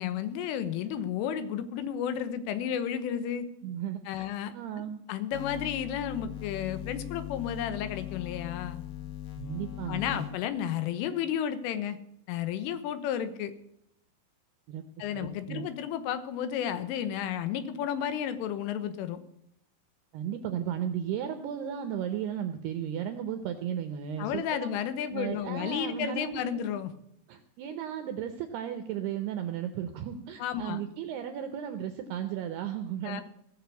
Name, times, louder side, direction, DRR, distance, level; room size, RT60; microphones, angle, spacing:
voice 1, 0.0-3.5 4.1-4.5 5.1-8.8 9.9-12.0 12.3-13.5 15.0-19.2 24.2-26.9 30.4-30.8 33.1-33.2, left 9 dB, 85° left, 12 dB, 3.6 m, -32 dB
voice 2, 3.6-4.3 4.5-5.0 9.4-10.3 14.7-14.8 15.1-15.6 20.1-24.7 25.1-26.7 27.3-33.2, right 9 dB, 80° right, 8 dB, 2.3 m, -35 dB
sound 1, 5.3-10.7, left 11 dB, 65° left, 3.6 m, -40 dB
17.5 x 7.0 x 8.1 m, 0.74 s
omnidirectional pair, 5.7 m